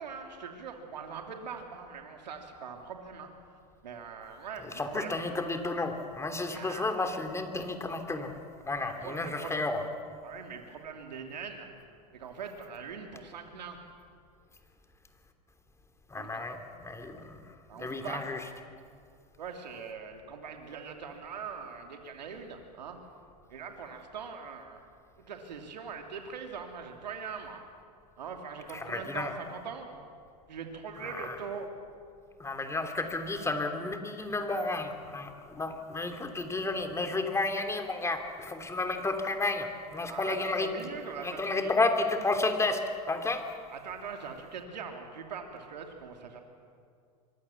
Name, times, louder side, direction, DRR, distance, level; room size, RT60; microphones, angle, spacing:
voice 1, 0.0-3.3 3.8-5.2 6.5-6.9 8.8-9.5 10.2-11.7 12.1-13.8 16.1-16.5 17.7-18.2 19.4-23.0 23.5-24.8 25.2-27.6 28.2-29.9 30.5-31.7 40.1-41.7 43.7-46.4, right 6 dB, 85° right, 3 dB, 2.9 m, -42 dB
voice 2, 4.6-8.3 8.7-9.8 16.1-17.4 17.7-18.4 28.7-29.3 31.0-31.4 32.4-40.9 41.2-43.4, left 3 dB, 15° left, 6 dB, 3.1 m, -32 dB
25.5 x 23.5 x 7.2 m, 2.2 s
hypercardioid pair, 100°, 21 cm